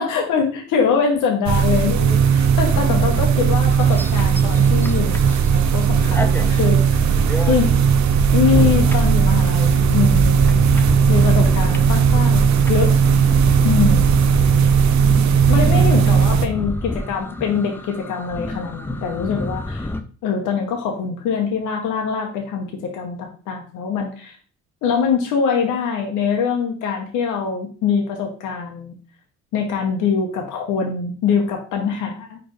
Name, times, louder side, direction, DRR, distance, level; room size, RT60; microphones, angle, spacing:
voice 1, 0.0-7.7 8.3-10.6 11.1-12.9 13.6-14.1 15.5-19.9 20.2-24.4 24.8-29.0 29.5-32.4, left 6 dB, 85° left, 1 dB, 0.8 m, -23 dB
sound 1, 1.5-16.5, right 7 dB, 70° right, 0.5 m, -16 dB
sound 2, 3.7-5.7 6.0-20.0, left 1 dB, 5° left, 0.4 m, -28 dB
4.3 x 3.2 x 3.0 m, 0.40 s
cardioid pair, 90°, 30 cm